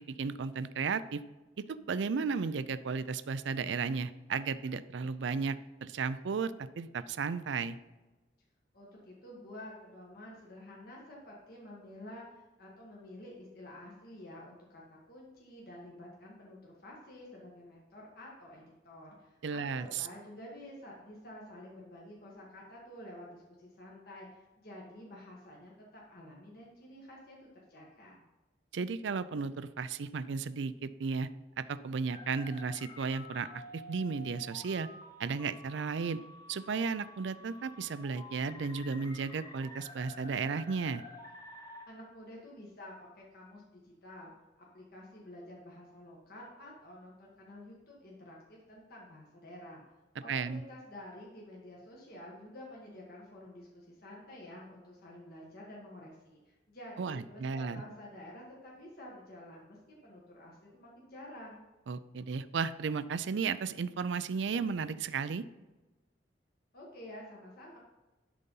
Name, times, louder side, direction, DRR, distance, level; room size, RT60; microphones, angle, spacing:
voice 1, 0.2-1.2 1.7-7.8 19.4-20.1 28.7-31.3 31.6-34.9 35.2-36.2 36.5-41.0 50.3-50.6 57.0-57.8 61.9-65.4, right 5 dB, 75° right, 14 dB, 0.4 m, -34 dB
voice 2, 8.7-28.2 41.8-44.3 44.6-49.8 50.2-61.6 66.7-67.8, left 1 dB, 55° left, -4 dB, 1.7 m, -50 dB
sound 1, 32.1-41.9, left 1 dB, 20° left, 1.2 m, -50 dB
12.0 x 4.1 x 5.4 m, 1.1 s
head